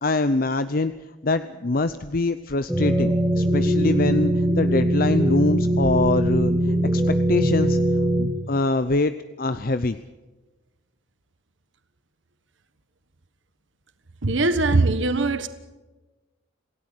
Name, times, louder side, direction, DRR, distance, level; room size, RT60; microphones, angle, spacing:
voice 1, 0.0-0.9 1.2-6.5 6.9-7.0 7.3-7.8 8.2-10.0, left 2 dB, 45° left, 0.7 m, -24 dB
sound 1, 2.7-8.2, right 1 dB, ahead, 3.5 m, -21 dB
voice 2, 14.2-15.5, right 2 dB, 70° right, 1.4 m, -21 dB
27.5 x 17.5 x 7.8 m
head